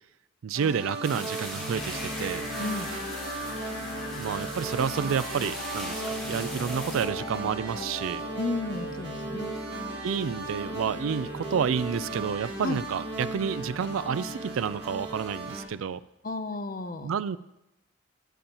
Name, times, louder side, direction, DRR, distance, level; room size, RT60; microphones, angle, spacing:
voice 1, 0.4-2.4 4.2-8.2 10.0-16.0 17.0-17.4, right 7 dB, 85° right, 16 dB, 0.4 m, -30 dB
sound 1, 0.5-15.6, right 2 dB, 60° right, 1.8 m, -36 dB
sound 2, 1.0-7.0, equal, ahead, 1.5 m, -40 dB
sound 3, 1.7-15.7, left 1 dB, 70° left, 3.0 m, -42 dB
voice 2, 2.6-2.9 8.4-9.6 12.6-12.8 16.2-17.1, left 3 dB, 40° left, 9 dB, 0.6 m, -33 dB
16.5 x 7.0 x 3.0 m, 0.87 s
head